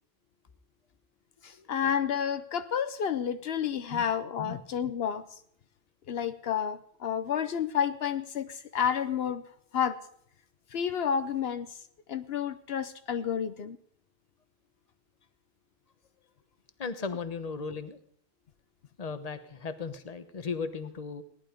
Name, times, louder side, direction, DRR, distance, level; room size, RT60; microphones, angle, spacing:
voice 1, 1.4-5.3 6.1-9.4 9.7-10.0 10.7-11.8 12.1-13.8, left 8 dB, 75° left, 11 dB, 0.9 m, -30 dB
voice 2, 16.8-18.0 19.0-21.2, left 5 dB, 40° left, 10 dB, 1.1 m, -36 dB
17.5 x 11.0 x 5.1 m, 0.68 s
omnidirectional pair, 1.0 m